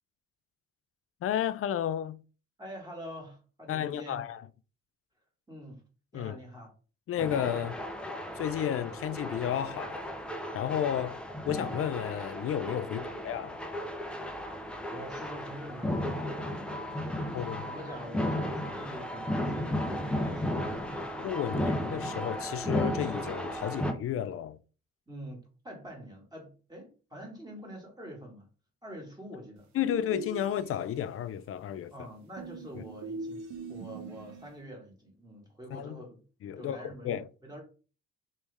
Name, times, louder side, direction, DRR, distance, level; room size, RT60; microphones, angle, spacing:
voice 1, 1.2-2.2 3.7-4.4 6.1-6.4 7.1-7.8 8.4-10.1 10.5-11.2 11.4-13.6 17.3-17.7 21.2-24.6 29.7-31.9 35.7-36.0 36.4-37.2, left 10 dB, 50° left, 0.4 m, -32 dB
voice 2, 2.6-4.2 5.5-5.8 6.1-6.7 12.9-13.2 14.5-20.9 25.1-28.5 28.8-29.7 31.9-36.2 36.6-37.6, equal, 15° right, 1.9 m, -46 dB
sound 1, 7.2-23.9, left 1 dB, 5° left, 0.6 m, -34 dB
sound 2, 29.9-31.1 32.4-34.6, right 4 dB, 65° right, 0.8 m, -42 dB
3.2 x 3.1 x 3.4 m
cardioid pair, 90°, 30 cm